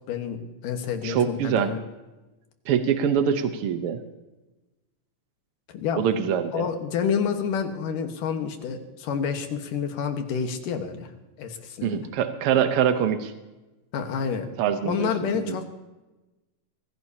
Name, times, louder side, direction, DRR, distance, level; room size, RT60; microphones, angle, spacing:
voice 1, 0.1-1.8 5.7-11.1 11.4-12.1 13.9-14.5 14.8-15.6, left 7 dB, 85° left, 6 dB, 3.0 m, -29 dB
voice 2, 1.0-1.7 2.7-4.0 6.0-6.7 11.8-13.3 14.6-15.1 15.5-15.6, right 8 dB, 80° right, 9 dB, 1.3 m, -24 dB
24.0 x 16.0 x 2.8 m, 1.1 s
omnidirectional pair, 3.7 m